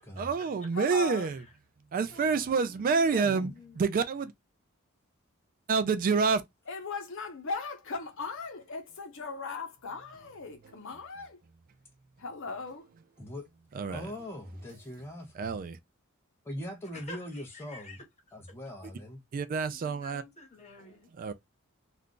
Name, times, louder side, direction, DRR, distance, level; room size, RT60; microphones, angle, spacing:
voice 1, 0.2-1.4 1.9-4.3 5.7-6.4 13.7-14.1 15.3-15.8 19.3-20.2 21.2-21.3, right 5 dB, 40° right, 0.3 m, -28 dB
voice 2, 0.7-1.3 6.7-11.4 12.2-12.9, left 4 dB, 65° left, 0.8 m, -38 dB
voice 3, 2.1-3.9 16.8-18.4 19.6-21.1, left 2 dB, 30° left, 1.2 m, -50 dB
voice 4, 3.1-3.5 13.2-13.5 13.9-15.5 16.4-18.0 18.3-19.2, left 1 dB, 10° left, 0.6 m, -41 dB
2.4 x 2.3 x 3.6 m
head